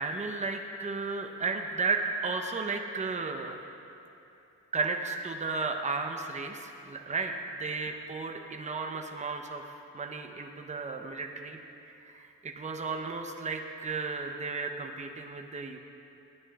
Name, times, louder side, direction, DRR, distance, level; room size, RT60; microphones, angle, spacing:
voice 1, 0.0-3.6 4.7-7.3 7.6-9.6 9.9-11.6 12.0-15.8, right 4 dB, 25° right, 3 dB, 0.9 m, -34 dB
15.5 x 9.7 x 2.5 m, 2.9 s
cardioid pair, 90°, 30 cm